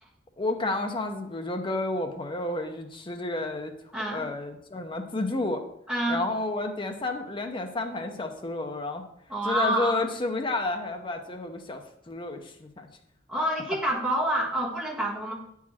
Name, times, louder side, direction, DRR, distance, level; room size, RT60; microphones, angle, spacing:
voice 1, 0.4-3.7 4.1-5.6 6.1-9.1 9.4-11.8 12.1-12.9, left 2 dB, 25° left, 5 dB, 0.7 m, -31 dB
voice 2, 3.9-4.3 5.9-6.2 9.3-10.0 13.3-15.3, right 1 dB, 5° right, -5 dB, 1.7 m, -27 dB
8.3 x 4.8 x 4.3 m, 0.74 s
head